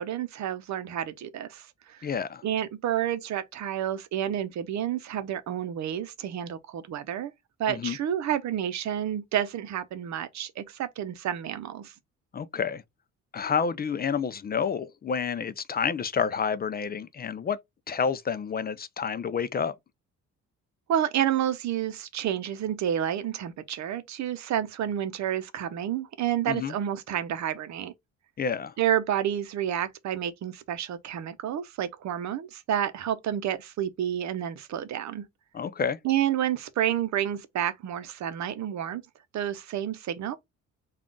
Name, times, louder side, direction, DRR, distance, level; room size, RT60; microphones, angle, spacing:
voice 1, 0.0-2.0 2.4-7.3 7.6-11.9 20.9-27.9 28.8-35.2 36.0-39.0 39.3-40.4, right 10 dB, 65° right, 0.7 m, -30 dB
voice 2, 2.0-2.4 7.7-8.0 12.3-12.8 13.3-17.6 17.9-19.7 26.5-26.7 28.4-28.7 35.5-36.0, left 6 dB, 30° left, 0.4 m, -29 dB
3.6 x 2.4 x 3.7 m
cardioid pair, 90°, 30 cm